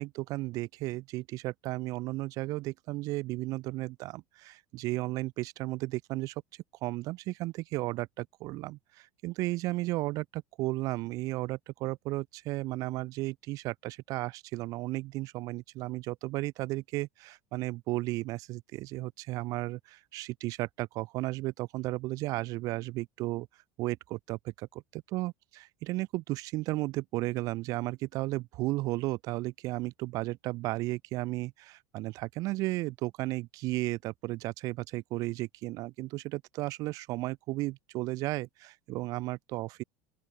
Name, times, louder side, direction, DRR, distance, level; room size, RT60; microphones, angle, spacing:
voice 1, 0.0-6.3 6.8-23.5 23.8-24.5 24.9-39.8, right 19 dB, 50° right, 1.3 m, -34 dB
open air
figure-of-eight pair, 75°, 8 cm